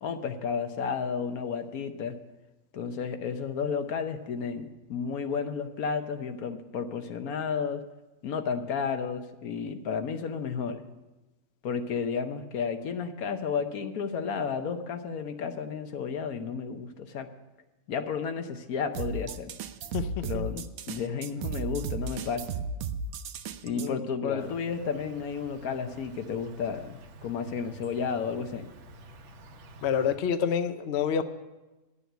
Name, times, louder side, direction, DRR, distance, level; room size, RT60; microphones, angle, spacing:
voice 1, 0.0-2.2 2.7-7.8 8.2-10.8 11.6-17.3 17.9-19.5 20.2-20.6 20.9-22.5 23.6-28.7, left 6 dB, 75° left, 8 dB, 1.3 m, -32 dB
sound 1, 18.9-23.9, right 5 dB, 75° right, 1.1 m, -35 dB
voice 2, 19.9-20.6 23.8-24.0 24.2-24.5 29.8-31.2, left 7 dB, 60° left, 10 dB, 0.8 m, -28 dB
Insect, 24.4-30.2, right 1 dB, 55° right, 1.1 m, -49 dB
10.5 x 7.0 x 9.2 m, 1.1 s
omnidirectional pair, 1.5 m